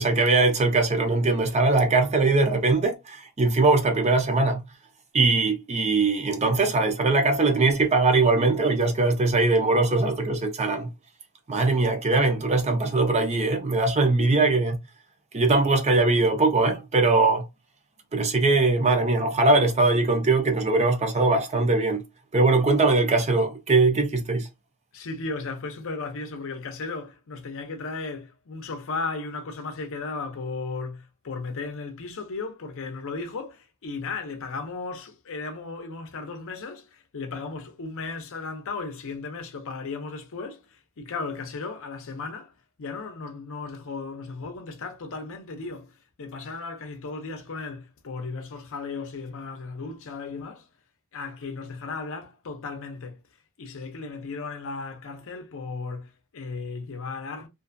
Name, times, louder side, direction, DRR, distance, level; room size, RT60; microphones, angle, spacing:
voice 1, 0.0-4.6 5.1-10.9 11.5-14.8 15.3-17.5 18.1-22.0 22.3-24.5, right 3 dB, 30° right, 0.5 m, -21 dB
voice 2, 24.9-42.5 42.8-50.7 51.1-53.2 53.6-57.5, left 4 dB, 60° left, 0.6 m, -35 dB
2.5 x 2.3 x 2.5 m
head